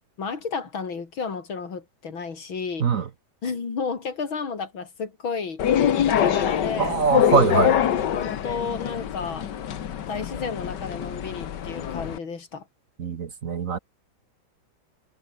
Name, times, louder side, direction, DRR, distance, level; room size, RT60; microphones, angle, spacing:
voice 1, 0.2-2.9 3.4-5.6 6.0-7.0 8.1-9.5 10.1-12.7, left 5 dB, 85° left, 3.9 m, -32 dB
sound 1, 5.6-12.2, left 9 dB, 65° left, 1.8 m, -24 dB
voice 2, 6.8-7.8 13.0-13.8, right 6 dB, 50° right, 1.3 m, -22 dB
omnidirectional pair, 2.1 m